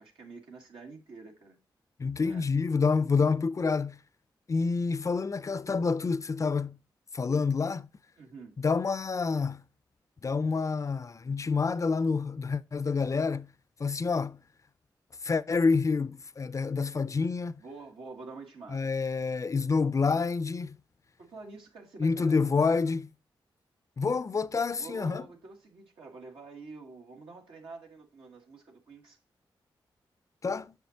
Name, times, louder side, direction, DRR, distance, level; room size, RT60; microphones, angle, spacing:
voice 1, 0.0-1.6 2.2-2.5 8.2-8.5 17.6-18.9 21.2-22.9 24.8-29.2, right 4 dB, 80° right, 1.5 m, -47 dB
voice 2, 2.0-4.0 4.5-6.8 7.1-7.9 8.6-9.6 10.2-13.5 13.8-14.4 15.2-17.5 18.7-20.8 22.0-23.1 24.0-25.2 30.4-30.7, left 4 dB, 35° left, 0.4 m, -28 dB
7.1 x 5.9 x 2.8 m
cardioid pair, 55°, 9 cm